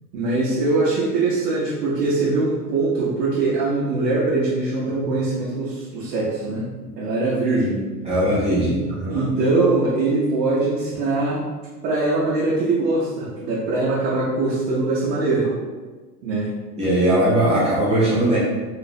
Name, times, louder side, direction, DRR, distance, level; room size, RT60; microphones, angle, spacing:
voice 1, 0.1-6.7 7.0-7.8 8.6-8.7 9.1-11.4 11.8-15.5 16.2-16.5, right 3 dB, 80° right, -6 dB, 0.8 m, -22 dB
voice 2, 8.0-9.2 16.8-18.4, right 1 dB, 15° right, -8 dB, 0.3 m, -19 dB
3.2 x 2.0 x 2.4 m, 1.3 s
hypercardioid pair, 105°, 48 cm